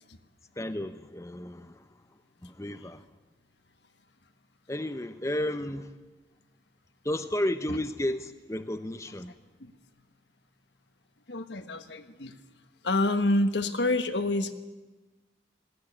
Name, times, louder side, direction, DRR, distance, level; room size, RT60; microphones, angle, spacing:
voice 1, 0.5-3.1 4.7-6.0 7.0-9.3, left 1 dB, 15° left, 0.8 m, -33 dB
voice 2, 11.3-12.4 12.8-14.5, left 2 dB, 75° left, 1.4 m, -27 dB
19.5 x 17.0 x 10.0 m
head